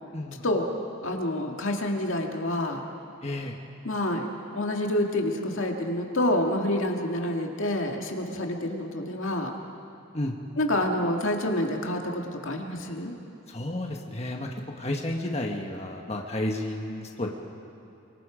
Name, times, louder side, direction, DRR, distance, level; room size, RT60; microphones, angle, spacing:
voice 1, 1.0-2.9 3.8-4.3 4.5-9.5 10.6-13.1, left 1 dB, 70° left, 2 dB, 2.0 m, -28 dB
voice 2, 3.2-3.6 10.1-10.3 13.5-14.5 14.8-17.3, left 1 dB, 30° left, 1 dB, 1.5 m, -31 dB
28.0 x 24.0 x 5.1 m, 2.9 s
head